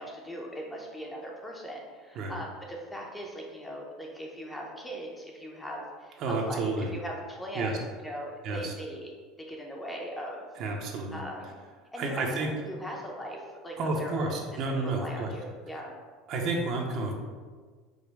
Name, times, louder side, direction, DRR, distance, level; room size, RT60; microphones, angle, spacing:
voice 1, 0.0-9.1 9.5-10.5 11.1-11.5 11.9-14.4 14.6-15.9, equal, 10° left, -1 dB, 0.7 m, -40 dB
voice 2, 6.2-6.9 7.5-7.8 8.4-8.7 10.6-11.2 12.0-12.5 13.8-15.3 16.3-17.1, right 3 dB, 50° right, 1 dB, 0.7 m, -30 dB
5.0 x 2.2 x 4.7 m, 1.5 s
cardioid pair, 140°, 0 cm